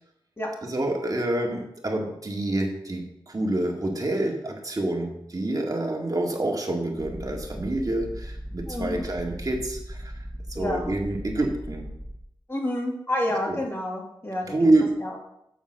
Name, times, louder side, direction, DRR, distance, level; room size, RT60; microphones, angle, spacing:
voice 1, 0.6-10.1 10.5-11.8 13.5-13.6 14.5-14.9, right 2 dB, 40° right, 0 dB, 2.1 m, -27 dB
sound 1, 7.0-12.3, equal, 10° right, 0.8 m, -38 dB
voice 2, 8.7-9.0 10.5-10.9 12.5-14.5 15.0-15.2, left 1 dB, 25° left, -1 dB, 2.3 m, -29 dB
7.3 x 7.1 x 6.4 m, 0.80 s
wide cardioid pair, 80°, 9 cm